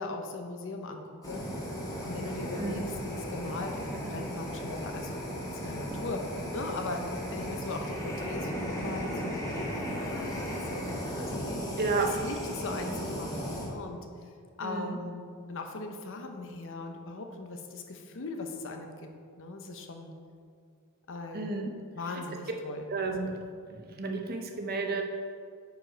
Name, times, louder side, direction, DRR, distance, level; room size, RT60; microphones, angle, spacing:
voice 1, 0.0-1.4 2.0-5.2 5.6-6.2 6.5-7.0 7.3-11.8 12.2-14.1 14.6-19.1 19.4-20.1 21.1-21.6 22.0-23.4, left 3 dB, 60° left, 4 dB, 0.8 m, -39 dB
Fire, 1.2-13.7, equal, 15° left, 1.7 m, -36 dB
voice 2, 2.6-2.9 11.8-12.2 14.6-15.0 21.3-21.7 22.9-23.3 23.7-25.0, right 3 dB, 45° right, 3 dB, 0.8 m, -32 dB
9.4 x 4.8 x 4.5 m, 2.2 s
head